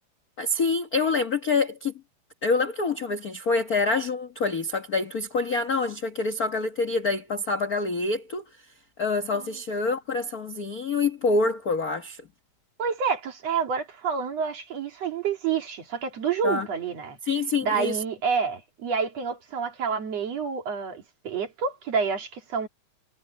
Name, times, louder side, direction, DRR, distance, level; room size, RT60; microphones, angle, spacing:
voice 1, 0.4-1.9 2.4-8.4 9.0-12.2 16.4-16.7 17.2-18.0, left 3 dB, 50° left, 1.1 m, -26 dB
voice 2, 12.8-17.2 17.6-22.7, right 6 dB, 55° right, 3.6 m, -28 dB
omnidirectional pair, 3.5 m